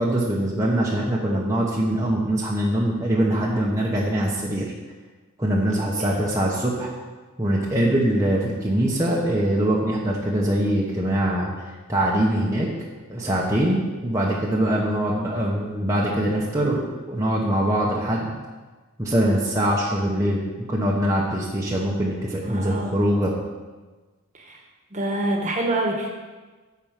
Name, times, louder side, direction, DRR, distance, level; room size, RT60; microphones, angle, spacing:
voice 1, 0.0-4.7 5.4-6.9 7.4-11.5 11.9-12.7 13.1-18.3 19.0-23.3, right 1 dB, 15° right, -5 dB, 1.1 m, -23 dB
voice 2, 22.4-22.9 24.3-24.6 24.9-26.2, right 1 dB, 35° right, 2 dB, 1.4 m, -26 dB
10.5 x 4.8 x 7.3 m, 1.3 s
head